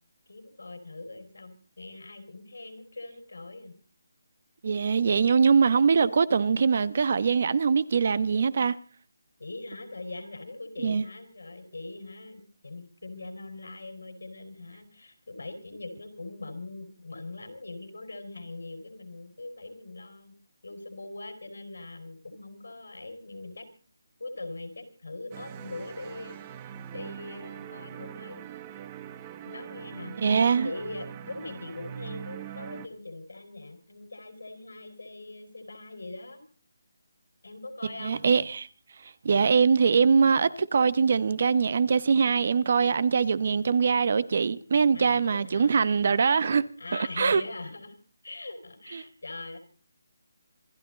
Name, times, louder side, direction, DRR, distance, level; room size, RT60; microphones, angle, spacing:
voice 1, 0.3-3.7 9.4-20.3 20.6-23.7 24.2-26.4 26.9-28.4 29.4-30.2 30.6-36.4 37.4-38.2 44.9-45.8 46.8-48.0 48.2-49.6, left 2 dB, 90° left, 5.2 m, -41 dB
voice 2, 4.6-8.7 10.8-11.0 30.2-30.7 38.0-38.7 39.2-46.6 47.2-47.4, right 5 dB, 40° right, 1.0 m, -22 dB
sound 1, 25.3-32.9, right 10 dB, 15° right, 1.0 m, -42 dB
27.0 x 12.0 x 4.0 m
hypercardioid pair, 170°, 0 cm